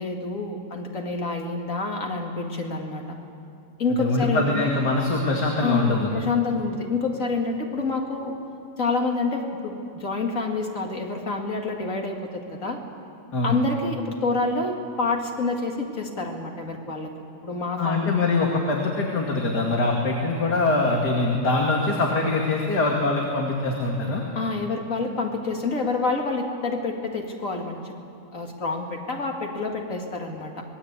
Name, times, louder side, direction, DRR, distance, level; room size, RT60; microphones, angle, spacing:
voice 1, 0.0-3.2 3.8-4.6 5.6-8.3 8.8-12.8 13.4-17.1 17.4-18.1 24.3-27.9 28.3-30.6, left 3 dB, 50° left, 2 dB, 2.8 m, -28 dB
voice 2, 4.0-6.1 13.3-13.6 17.8-24.2, left 2 dB, 85° left, 0 dB, 2.8 m, -23 dB
26.0 x 20.5 x 8.4 m, 2.5 s
omnidirectional pair, 1.7 m